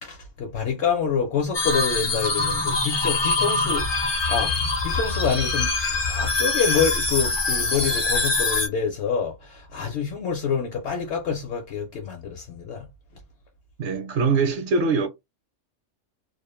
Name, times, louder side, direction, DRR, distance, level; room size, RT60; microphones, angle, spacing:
voice 1, 0.0-3.9 4.3-4.5 4.8-12.9, left 6 dB, 65° left, 0.9 m, -27 dB
sound 1, 1.5-8.7, left 3 dB, 30° left, 0.5 m, -24 dB
voice 2, 13.8-15.1, right 4 dB, 65° right, 0.8 m, -22 dB
2.4 x 2.0 x 3.0 m
omnidirectional pair, 1.3 m